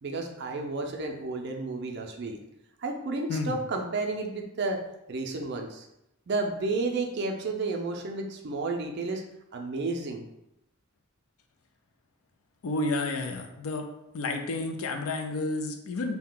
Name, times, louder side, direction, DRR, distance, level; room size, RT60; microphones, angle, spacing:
voice 1, 0.0-2.4 2.8-4.8 5.1-5.9 6.3-9.2 9.5-10.2, right 3 dB, 50° right, 3 dB, 0.4 m, -31 dB
voice 2, 12.6-13.9 14.1-16.2, left 2 dB, 80° left, 5 dB, 0.4 m, -31 dB
2.7 x 2.1 x 3.7 m, 0.85 s
head